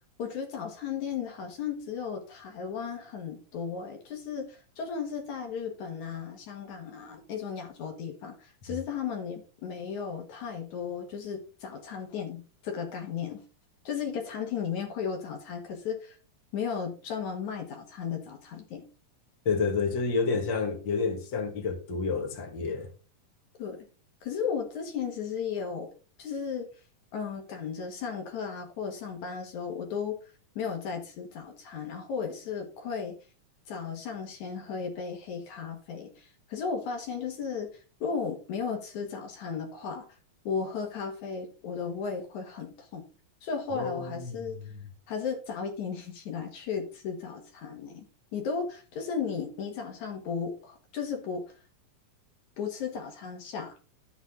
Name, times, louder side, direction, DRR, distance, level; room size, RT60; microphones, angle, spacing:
voice 1, 0.2-13.4 13.8-16.2 16.5-18.8 23.6-23.8 24.2-25.9 26.2-26.7 27.1-33.2 33.7-40.1 40.4-43.0 43.4-44.6 45.1-48.1 48.3-51.6 52.6-53.8, left 6 dB, 65° left, 2.9 m, -35 dB
voice 2, 19.5-22.9 43.7-44.9, left 4 dB, 40° left, 2.4 m, -30 dB
11.5 x 8.0 x 3.8 m
omnidirectional pair, 3.7 m